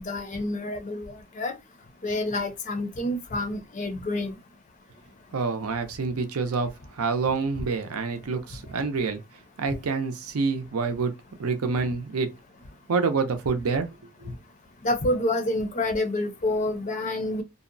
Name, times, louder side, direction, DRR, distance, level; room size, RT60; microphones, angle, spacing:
voice 1, 0.0-1.5 2.0-4.4 14.8-17.4, left 1 dB, 35° left, 0.5 m, -28 dB
voice 2, 5.3-9.2 9.6-11.1 11.4-12.3 12.9-13.9 14.2-14.3, right 4 dB, 75° right, 0.5 m, -27 dB
2.7 x 2.0 x 2.5 m
head